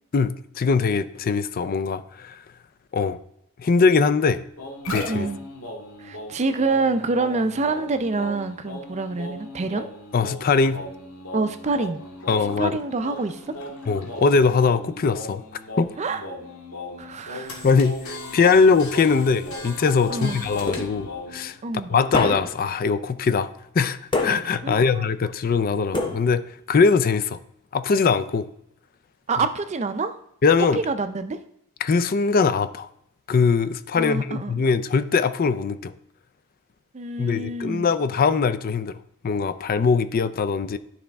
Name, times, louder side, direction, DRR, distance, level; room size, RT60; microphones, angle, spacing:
voice 1, 0.1-2.4 2.9-3.2 3.6-4.4 4.9-5.3 10.1-10.8 12.3-12.8 13.9-15.4 15.8-15.9 17.6-21.6 21.9-23.5 23.7-26.4 26.7-27.4 27.7-28.5 30.4-30.8 31.8-32.9 33.3-35.9 37.2-39.0 39.2-40.8, left 5 dB, 40° left, 14 dB, 0.4 m, -21 dB
sound 1, 4.6-21.5 21.9-22.3, left 1 dB, 80° left, 1.7 m, -37 dB
voice 2, 5.1-5.4 6.0-9.8 11.3-12.0 12.6-13.5 16.0-16.2 17.0-17.7 20.1-20.5 21.6-21.9 24.6-25.1 29.3-30.1 30.7-31.4 34.0-34.5 36.9-37.9, right 3 dB, 30° right, 9 dB, 0.4 m, -26 dB
sound 2, 20.7-21.3 22.1-22.8 24.1-24.8 25.9-26.6, left 2 dB, 20° left, 0.8 m, -27 dB
12.0 x 4.2 x 3.5 m, 0.75 s
head